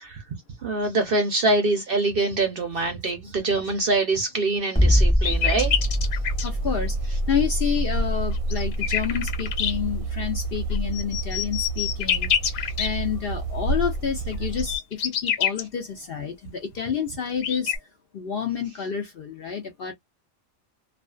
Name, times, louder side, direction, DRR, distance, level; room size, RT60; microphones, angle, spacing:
voice 1, 0.6-5.7, right 2 dB, 55° right, 0.6 m, -24 dB
sound 1, 4.8-10.9, equal, 10° left, 0.5 m, -24 dB
sound 2, 5.2-6.5 8.3-9.7 10.7-12.9 14.3-15.6 16.8-16.9 17.1-17.8, left 9 dB, 75° left, 1.0 m, -26 dB
sound 3, 5.3-14.8, right 2 dB, 85° right, 1.1 m, -31 dB
voice 2, 6.4-17.7 18.1-19.9, left 7 dB, 60° left, 0.6 m, -29 dB
2.5 x 2.3 x 2.2 m
omnidirectional pair, 1.4 m